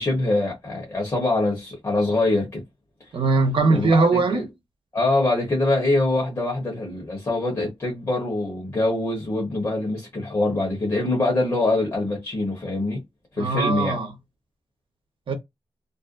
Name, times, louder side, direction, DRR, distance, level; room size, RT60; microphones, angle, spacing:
voice 1, 0.0-2.6 3.7-4.4 4.9-13.0 13.4-14.0, left 2 dB, 30° left, 1.0 m, -24 dB
voice 2, 3.1-4.5 13.4-14.1 15.3-15.4, right 3 dB, 65° right, 0.8 m, -20 dB
2.5 x 2.1 x 2.5 m
wide cardioid pair, 145°, 10 cm